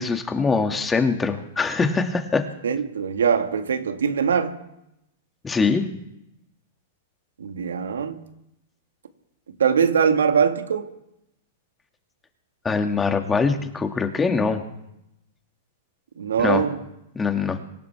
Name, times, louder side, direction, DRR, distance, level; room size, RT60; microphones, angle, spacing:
voice 1, 0.0-2.5 5.4-5.8 12.6-14.6 16.4-16.6 17.2-17.6, left 4 dB, 15° left, 5 dB, 2.1 m, -23 dB
voice 2, 2.6-4.6 7.4-8.2 9.6-10.9 16.2-16.8, right 6 dB, 85° right, 7 dB, 1.8 m, -22 dB
25.0 x 16.0 x 3.5 m, 0.83 s
hypercardioid pair, 115°, 0 cm